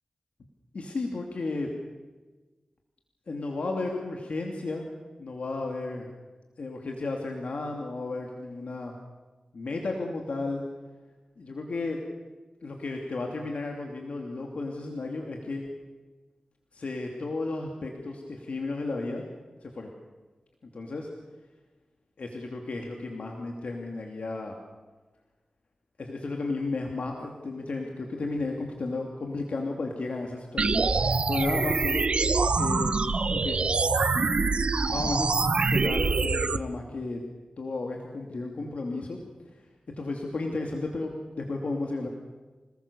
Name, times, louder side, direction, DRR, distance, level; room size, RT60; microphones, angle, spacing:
voice 1, 0.7-1.7 3.3-4.9 5.2-6.1 6.6-8.9 9.5-10.6 11.4-12.0 12.6-15.7 16.7-19.2 19.6-19.9 20.7-21.1 22.2-24.6 26.0-32.1 32.6-33.0 33.3-33.7 34.9-35.3 35.7-37.2 37.6-39.2 40.0-42.1, left 3 dB, 70° left, 1 dB, 2.7 m, -33 dB
sound 1, 30.6-36.6, right 4 dB, 55° right, 0.8 m, -25 dB
27.5 x 19.5 x 6.9 m, 1.3 s
wide cardioid pair, 95°, 2 cm